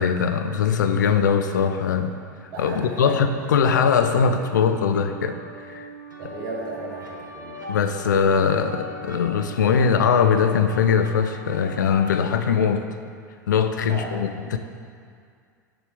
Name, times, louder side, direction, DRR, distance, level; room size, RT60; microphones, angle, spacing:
voice 1, 0.0-2.2 2.6-5.4 5.7-5.9 7.7-12.9 13.5-14.6, left 6 dB, 70° left, 8 dB, 0.5 m, -21 dB
voice 2, 2.5-3.7 6.2-7.6 13.9-14.1, right 2 dB, 45° right, -6 dB, 1.6 m, -34 dB
sound 1, 4.1-12.1, equal, 80° right, 1.3 m, -40 dB
6.8 x 5.1 x 6.9 m, 2.2 s
figure-of-eight pair, 80°, 10 cm